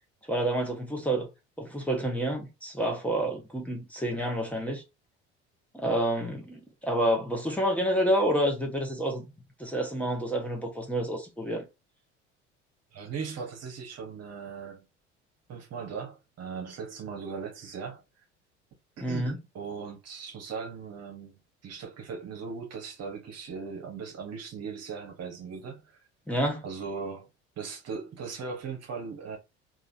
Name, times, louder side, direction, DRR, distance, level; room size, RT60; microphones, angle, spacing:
voice 1, 0.3-1.3 1.6-4.8 5.7-9.3 9.6-11.6 19.0-19.4 26.3-26.6, right 1 dB, 5° left, 1.3 m, -28 dB
voice 2, 12.9-14.8 15.5-18.0 19.0-25.9 26.6-27.3 27.6-29.4, right 5 dB, 45° right, 1.3 m, -38 dB
3.7 x 2.7 x 2.7 m
hypercardioid pair, 65°, 34 cm